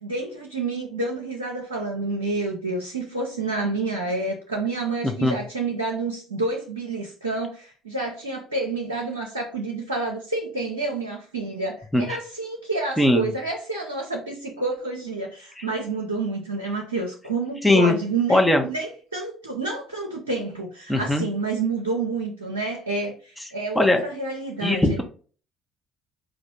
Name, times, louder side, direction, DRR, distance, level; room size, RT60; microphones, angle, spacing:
voice 1, 0.0-25.0, right 3 dB, 90° right, -2 dB, 0.6 m, -29 dB
voice 2, 5.0-5.4 11.9-12.2 13.0-13.3 17.6-17.9 18.3-18.6 20.9-21.3 23.7-24.0 24.6-25.0, left 1 dB, 5° left, 3 dB, 1.0 m, -19 dB
4.7 x 2.6 x 3.5 m, 0.39 s
figure-of-eight pair, 55°, 0 cm